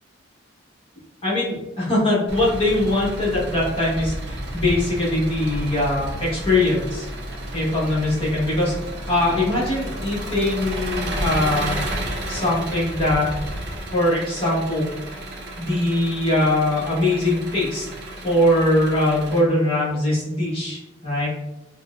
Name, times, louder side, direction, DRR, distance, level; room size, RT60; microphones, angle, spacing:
voice 1, 1.2-7.1 7.5-8.7 9.1-11.7 12.3-13.3 13.9-14.9 15.6-17.8 18.2-21.3, left 1 dB, 30° left, -6 dB, 1.2 m, -21 dB
Engine, 2.3-19.4, right 1 dB, 55° right, 0.6 m, -31 dB
5.0 x 2.1 x 2.4 m, 0.98 s
head